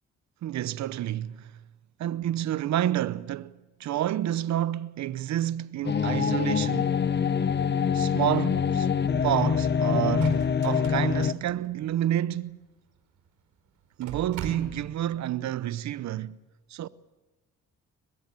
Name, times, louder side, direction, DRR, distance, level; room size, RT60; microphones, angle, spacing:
voice 1, 0.4-1.5 2.0-7.0 7.9-8.9 9.2-12.6 14.0-16.4 16.7-16.9, right 12 dB, 65° right, 0.8 m, -29 dB
sound 1, 5.8-11.3, left 7 dB, 35° left, 1.0 m, -25 dB
sound 2, 9.0-9.6 9.9-12.1 13.0-13.1 13.3-13.4 13.8-15.1, right 7 dB, 80° right, 4.5 m, -40 dB
22.5 x 21.0 x 8.3 m
cardioid pair, 90°, 30 cm